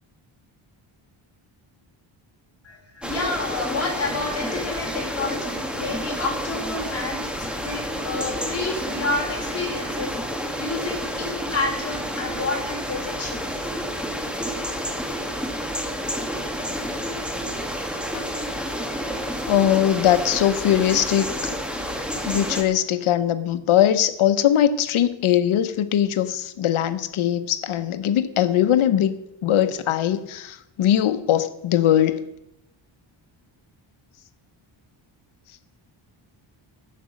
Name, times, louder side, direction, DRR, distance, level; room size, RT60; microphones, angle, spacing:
voice 1, 2.6-10.1 10.6-13.6, left 3 dB, 30° left, 0 dB, 3.3 m, -30 dB
sound 1, 3.0-22.6, equal, ahead, 1.2 m, -30 dB
voice 2, 19.5-21.5 22.2-29.1 29.4-32.3, left 11 dB, 90° left, 12 dB, 1.0 m, -21 dB
11.5 x 8.4 x 6.3 m, 0.86 s
wide cardioid pair, 155°, 48 cm